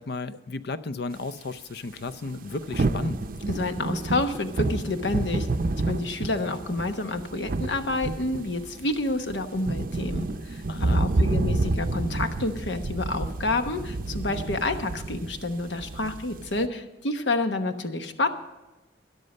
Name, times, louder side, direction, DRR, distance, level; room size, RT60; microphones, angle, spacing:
voice 1, 0.0-3.2 10.7-11.0, left 3 dB, 65° left, 14 dB, 0.6 m, -34 dB
sound 1, 2.1-16.7, right 2 dB, 50° right, 0.5 m, -29 dB
voice 2, 3.5-5.5 5.9-18.3, left 2 dB, 80° left, 8 dB, 1.1 m, -29 dB
13.0 x 11.0 x 5.4 m, 1.1 s
head